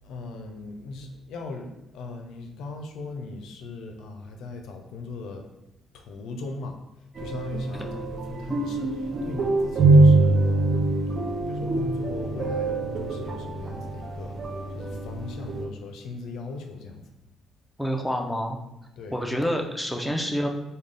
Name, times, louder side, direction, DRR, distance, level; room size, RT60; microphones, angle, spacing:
voice 1, 0.0-1.7 1.9-5.5 5.9-6.8 7.2-10.8 11.5-14.4 14.7-17.0 19.0-19.2, left 3 dB, 85° left, 3 dB, 0.4 m, -38 dB
sound 1, 7.2-15.7, right 2 dB, 50° right, 0.5 m, -23 dB
voice 2, 17.8-18.6 19.1-20.5, equal, ahead, 1 dB, 0.4 m, -27 dB
3.7 x 2.2 x 3.3 m, 0.90 s
cardioid pair, 90°, 0 cm